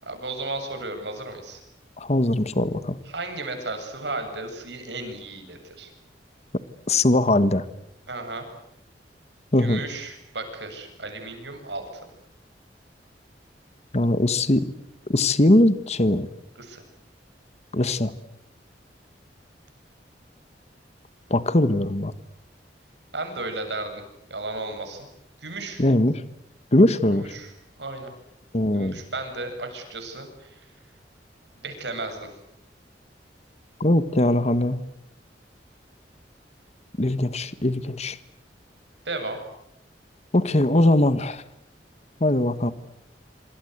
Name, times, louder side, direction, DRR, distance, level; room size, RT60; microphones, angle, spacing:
voice 1, 0.0-1.6 3.1-5.9 8.1-8.5 9.6-11.8 16.6-16.8 23.1-24.0 24.3-25.1 25.4-25.8 27.1-27.5 27.8-28.1 28.7-30.6 31.6-32.3 39.0-39.4, right 2 dB, 80° right, 6 dB, 7.8 m, -34 dB
voice 2, 2.0-3.0 6.9-7.6 9.5-9.8 13.9-14.7 15.1-16.3 17.7-18.1 21.3-22.1 25.8-26.2 26.7-27.3 28.5-29.0 33.8-34.8 37.0-38.2 40.3-41.4 42.2-42.7, left 1 dB, 40° left, 13 dB, 1.4 m, -20 dB
27.0 x 26.0 x 8.1 m, 0.77 s
head